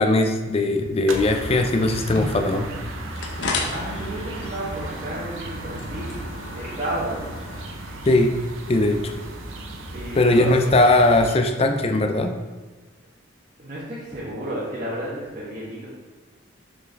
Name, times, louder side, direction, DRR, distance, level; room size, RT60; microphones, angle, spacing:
voice 1, 0.0-2.7 8.1-8.3 8.7-9.1 10.2-12.4, left 2 dB, 30° left, 6 dB, 0.4 m, -19 dB
sound 1, 1.1-11.4, right 1 dB, 75° right, 0.8 m, -35 dB
sound 2, 1.9-9.8, left 3 dB, 60° left, 0.8 m, -35 dB
voice 2, 3.7-6.2 6.5-7.3 9.9-10.6 13.6-15.9, right 1 dB, 35° right, -7 dB, 1.2 m, -32 dB
6.4 x 4.5 x 3.4 m, 1.3 s
head